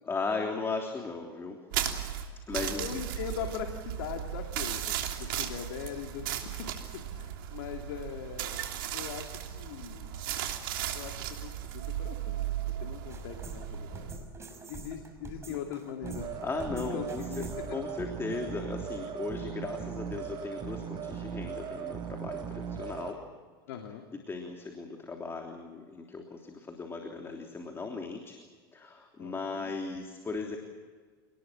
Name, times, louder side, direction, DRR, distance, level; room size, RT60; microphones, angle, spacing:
voice 1, 0.0-1.6 2.5-3.0 15.5-15.6 16.4-23.2 24.3-28.4 28.7-30.6, left 4 dB, 20° left, 3 dB, 3.3 m, -37 dB
sound 1, 1.7-14.2, right 11 dB, 70° right, 3.2 m, -36 dB
voice 2, 2.8-8.6 8.9-10.2 10.9-14.1 14.7-16.4 16.7-17.8 23.7-24.0 29.2-29.7, left 8 dB, 75° left, 4 dB, 2.6 m, -41 dB
sound 2, 13.1-17.8, right 3 dB, 25° right, 5.9 m, -46 dB
sound 3, 16.0-23.1, right 7 dB, 40° right, 3.5 m, -38 dB
28.0 x 20.0 x 7.6 m, 1.5 s
hypercardioid pair, 100°, 12 cm